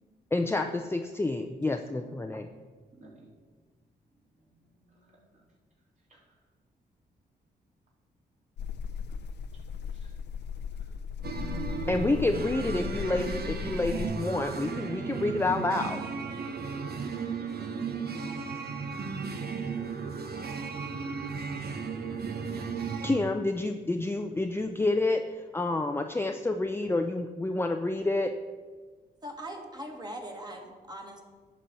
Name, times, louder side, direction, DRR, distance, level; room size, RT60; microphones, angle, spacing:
voice 1, 0.3-2.4 11.9-16.0 23.0-28.3, left 2 dB, 15° left, 5 dB, 0.5 m, -29 dB
voice 2, 1.9-2.6 2.9-3.3 4.2-5.4 6.1-6.5 9.1-9.2 9.9-10.2 10.7-11.0 12.0-12.1, right 1 dB, 40° right, -5 dB, 3.5 m, -57 dB
sound 1, 8.6-14.1, left 6 dB, 75° left, 0.6 m, -37 dB
sound 2, 11.2-23.2, right 5 dB, 65° right, 1.1 m, -35 dB
voice 3, 29.2-31.2, right 1 dB, 25° right, 2 dB, 2.0 m, -41 dB
11.0 x 4.3 x 7.6 m, 1.4 s
cardioid pair, 65°, 18 cm